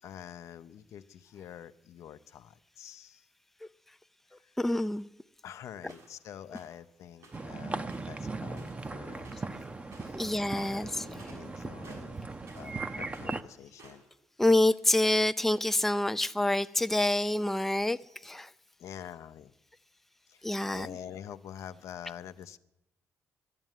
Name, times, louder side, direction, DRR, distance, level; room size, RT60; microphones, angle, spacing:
voice 1, 0.0-3.3 4.4-4.5 5.4-12.2 12.5-14.0 18.8-19.5 20.3-22.6, left 9 dB, 70° left, 0.6 m, -47 dB
voice 2, 4.6-5.1 10.1-11.0 14.4-18.0 18.2-18.5 20.4-20.9, left 1 dB, 5° left, 0.5 m, -27 dB
sound 1, 5.9-6.2 6.5-6.8 7.2-7.5 7.8-8.9 9.2-9.6 9.8-10.2 10.5-12.8 13.0-14.1, right 2 dB, 70° right, 6.2 m, -54 dB
sound 2, 7.3-13.4, right 3 dB, 25° right, 0.8 m, -38 dB
11.5 x 11.0 x 9.1 m
cardioid pair, 80°, 5 cm